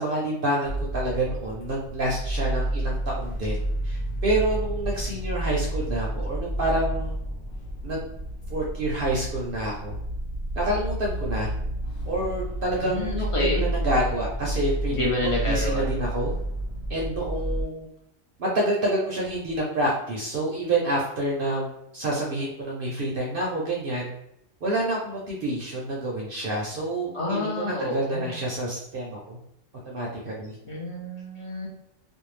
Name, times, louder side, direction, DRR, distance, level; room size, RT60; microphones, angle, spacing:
voice 1, 0.0-7.2 7.8-8.1 8.5-10.0 10.5-11.5 12.0-16.3 16.9-17.9 18.4-21.7 21.9-24.1 24.6-29.4 29.9-30.6, right 1 dB, 60° right, -3 dB, 0.6 m, -28 dB
sound 1, 0.6-17.6, right 1 dB, 75° left, 1.0 m, -30 dB
voice 2, 12.8-13.6 15.0-15.8 27.1-28.4 30.6-31.7, left 2 dB, 45° left, -4 dB, 0.4 m, -28 dB
2.6 x 2.1 x 3.1 m, 0.78 s
omnidirectional pair, 1.4 m